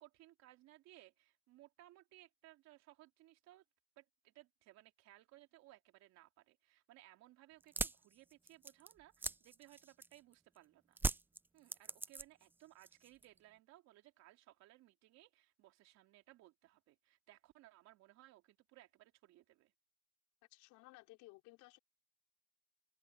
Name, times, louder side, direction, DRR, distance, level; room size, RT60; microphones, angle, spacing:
voice 1, 0.0-3.6 4.0-11.0 11.5-19.7, right 16 dB, 60° right, 3.6 m, -63 dB
sound 1, 7.6-10.3 11.0-12.5 12.8-13.4, right 3 dB, 5° right, 0.3 m, -40 dB
voice 2, 20.5-21.8, left 22 dB, 70° left, 4.6 m, -59 dB
open air
cardioid pair, 130°, 31 cm